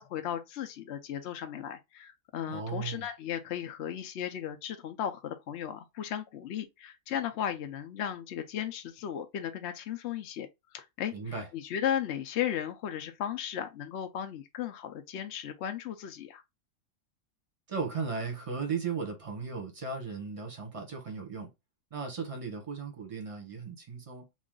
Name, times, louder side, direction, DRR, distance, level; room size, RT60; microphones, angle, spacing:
voice 1, 0.0-10.5 10.7-16.4, left 9 dB, 65° left, 0.7 m, -35 dB
voice 2, 2.5-3.1 11.1-11.5 17.7-21.5 21.9-24.3, right 5 dB, 25° right, 0.9 m, -36 dB
3.0 x 2.4 x 3.7 m
omnidirectional pair, 1.5 m